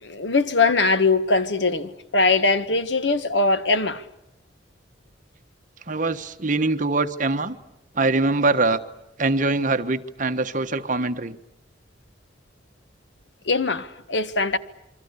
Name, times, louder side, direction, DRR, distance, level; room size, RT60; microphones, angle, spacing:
voice 1, 0.0-4.0 13.4-14.6, left 3 dB, 80° left, 1.5 m, -21 dB
voice 2, 5.9-7.6 7.9-8.8 9.2-11.4, right 3 dB, 45° right, 1.3 m, -23 dB
27.5 x 24.0 x 8.4 m
head